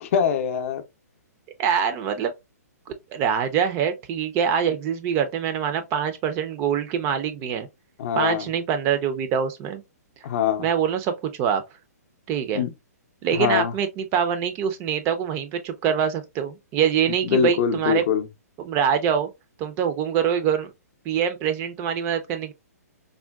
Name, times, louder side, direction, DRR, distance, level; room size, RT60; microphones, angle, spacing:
voice 1, 0.0-0.8 8.0-8.5 10.2-10.7 12.5-12.7 13.3-13.7 17.2-18.3, left 8 dB, 50° left, 0.5 m, -23 dB
voice 2, 1.6-2.3 3.1-7.7 8.2-9.8 10.6-11.6 12.3-12.6 13.2-18.0 18.6-19.3 19.6-20.7 21.1-22.5, right 8 dB, 25° right, 0.4 m, -24 dB
3.6 x 2.1 x 2.2 m
hypercardioid pair, 135°, 9 cm